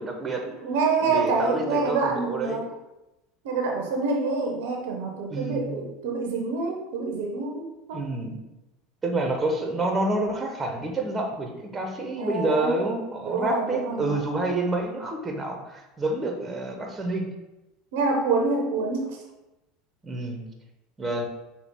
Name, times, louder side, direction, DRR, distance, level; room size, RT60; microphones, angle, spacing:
voice 1, 0.0-0.4 1.0-2.6 5.3-5.7 7.9-8.4 9.0-17.3 20.0-20.5 21.0-21.3, right 2 dB, 20° right, 3 dB, 0.9 m, -28 dB
voice 2, 0.6-2.7 3.4-8.0 12.2-12.8 13.2-14.2 17.9-19.2, right 4 dB, 75° right, 2 dB, 0.8 m, -27 dB
5.8 x 2.4 x 3.6 m, 0.98 s
hypercardioid pair, 85°, 0 cm